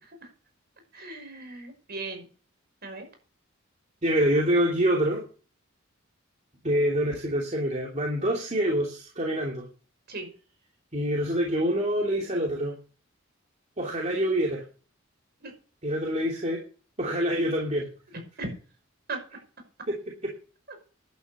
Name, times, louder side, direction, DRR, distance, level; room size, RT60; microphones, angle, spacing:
voice 1, 0.9-2.3 2.8-3.1 10.1-10.3 15.4-15.5 18.4-18.5 19.1-19.2 20.7-20.8, right 3 dB, 50° right, 5 dB, 5.6 m, -37 dB
voice 2, 4.0-5.2 6.6-9.6 10.9-12.8 13.8-14.6 15.8-16.6 17.0-17.8 19.9-20.0 20.2-20.3, equal, 35° right, -1 dB, 2.9 m, -26 dB
11.5 x 9.5 x 6.8 m, 0.37 s
head